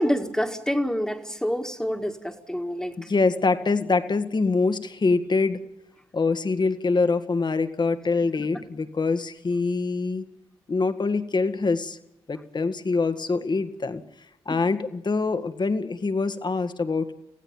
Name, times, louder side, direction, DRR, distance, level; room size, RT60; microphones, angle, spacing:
voice 1, 0.0-2.9, equal, 5° left, 3 dB, 2.1 m, -27 dB
voice 2, 3.0-5.6 6.1-10.3 10.7-12.0 12.3-14.0 14.5-17.1, left 4 dB, 45° left, 10 dB, 1.8 m, -24 dB
26.0 x 16.0 x 9.0 m, 0.89 s
supercardioid pair, 50°, 11 cm